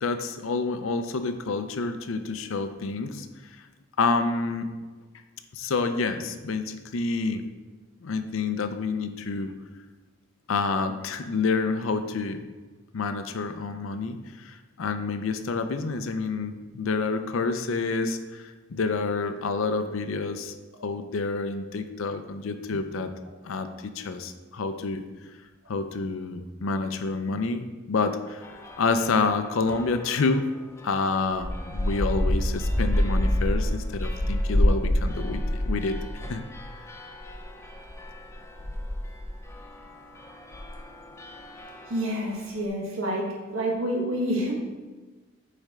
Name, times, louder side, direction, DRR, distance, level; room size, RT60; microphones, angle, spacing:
voice 1, 0.0-3.5 4.0-4.7 5.5-7.4 8.0-9.5 10.5-12.4 12.9-18.4 18.7-20.5 20.8-23.1 23.4-25.0 25.7-30.5 30.8-36.0 36.3-36.4, left 4 dB, 75° left, 9 dB, 0.5 m, -28 dB
sound 1, 28.4-30.3 30.8-42.3, equal, 15° left, 0.4 m, -29 dB
voice 2, 41.9-44.5, equal, 80° right, -1 dB, 1.2 m, -28 dB
6.6 x 4.3 x 3.6 m, 1.3 s
head